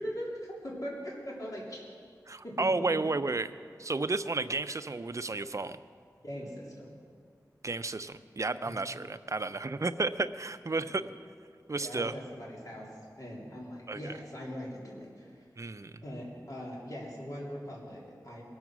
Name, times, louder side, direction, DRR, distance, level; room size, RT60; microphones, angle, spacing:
voice 1, 0.0-1.8 2.4-3.0 6.2-6.9 8.6-8.9 10.9-11.0 11.7-12.9 13.2-15.4 16.0-18.4, equal, 55° left, -5 dB, 3.4 m, -41 dB
voice 2, 2.3-3.5 3.8-5.8 7.6-11.0 11.7-12.1 13.9-14.1 15.6-15.9, right 3 dB, 45° right, 11 dB, 0.6 m, -32 dB
21.5 x 7.2 x 6.1 m, 2.1 s
wide cardioid pair, 50°, 7 cm